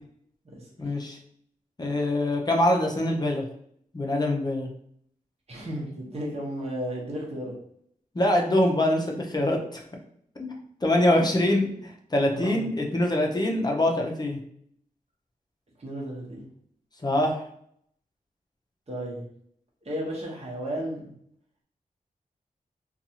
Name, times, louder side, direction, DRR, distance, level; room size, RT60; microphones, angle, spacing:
voice 1, 0.8-1.2 1.8-3.4 3.9-4.7 8.1-9.8 10.4-14.4 17.0-17.4, left 1 dB, 30° left, 1 dB, 0.6 m, -24 dB
voice 2, 5.5-7.5 12.3-12.6 15.8-16.5 18.9-19.3 19.8-21.1, right 1 dB, 45° right, -3 dB, 1.0 m, -33 dB
2.6 x 2.3 x 2.8 m, 0.66 s
wide cardioid pair, 70°, 15 cm